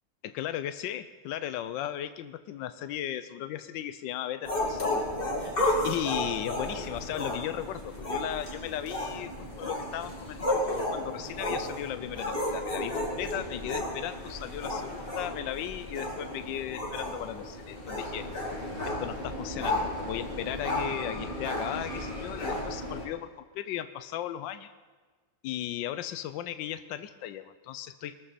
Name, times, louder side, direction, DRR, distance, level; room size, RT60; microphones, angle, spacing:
voice 1, 0.3-5.1 5.8-18.3 18.8-24.7 25.4-28.2, left 11 dB, 85° left, 12 dB, 1.3 m, -36 dB
sound 1, 4.4-23.1, left 1 dB, 30° left, 2.6 m, -33 dB
21.0 x 14.0 x 4.1 m, 1.4 s
omnidirectional pair, 1.9 m